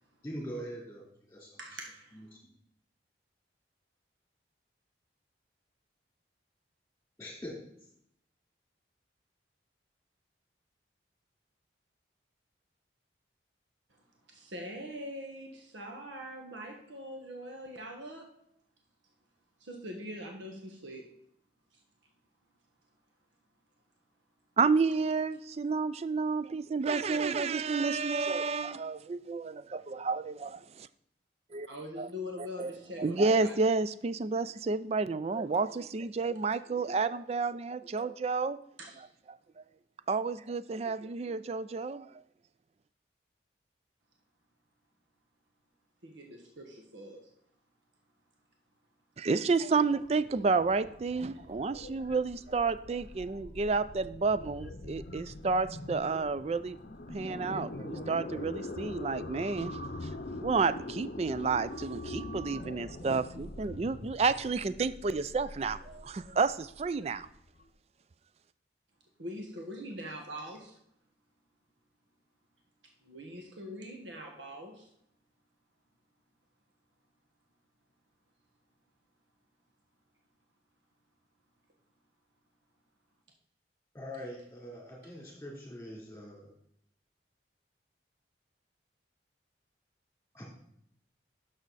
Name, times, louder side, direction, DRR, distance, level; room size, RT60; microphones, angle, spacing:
voice 1, 0.2-1.6 2.1-2.5 7.2-7.6 83.9-86.5 90.3-90.5, equal, 10° left, -2 dB, 3.4 m, -43 dB
voice 2, 1.6-2.3 14.3-18.4 19.6-21.2 21.7-21.8 31.7-33.6 38.8-39.1 46.0-47.3 51.2-51.4 69.2-70.7 73.0-74.9, equal, 80° right, 2 dB, 1.3 m, -43 dB
voice 3, 24.6-30.9 31.5-31.7 32.0-32.1 32.6-32.7 33.0-38.6 39.6-39.7 40.1-42.1 49.2-56.8 57.1-60.1 60.4-67.3, right 4 dB, 35° right, 14 dB, 0.3 m, -30 dB
sound 1, 49.8-67.6, left 2 dB, 55° left, 0.7 m, -43 dB
11.0 x 6.4 x 4.0 m, 0.71 s
head